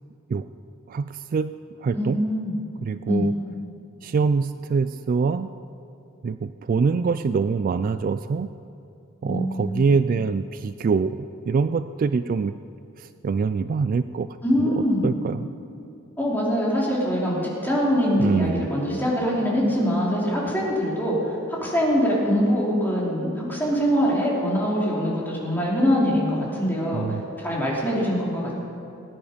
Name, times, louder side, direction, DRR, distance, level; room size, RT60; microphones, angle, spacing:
voice 1, 0.9-1.5 1.8-2.2 2.8-3.3 4.0-5.5 6.2-8.5 9.2-11.2 11.5-12.6 13.0-14.3 14.8-15.5 18.2-18.7 26.9-27.3, right 5 dB, 45° right, 12 dB, 0.3 m, -24 dB
voice 2, 1.9-2.6 3.1-3.3 9.2-9.9 14.4-15.1 16.2-21.2 21.6-27.1 27.4-28.5, equal, 10° left, -5 dB, 3.1 m, -23 dB
19.0 x 9.6 x 5.1 m, 2.8 s
head